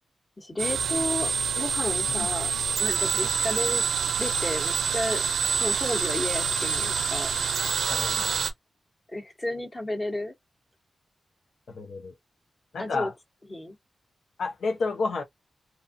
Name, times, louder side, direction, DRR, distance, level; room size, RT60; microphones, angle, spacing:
voice 1, 0.4-2.5 2.8-3.8 4.2-5.2 5.6-7.3 9.1-10.3 12.8-13.1 13.5-13.8, left 1 dB, 25° left, 1.1 m, -32 dB
sound 1, 0.6-8.5, right 6 dB, 85° right, 0.5 m, -27 dB
voice 2, 7.9-8.3 11.7-12.1 12.7-13.1 14.4-15.2, left 4 dB, 85° left, 0.6 m, -30 dB
2.6 x 2.3 x 2.5 m
wide cardioid pair, 105°, 0 cm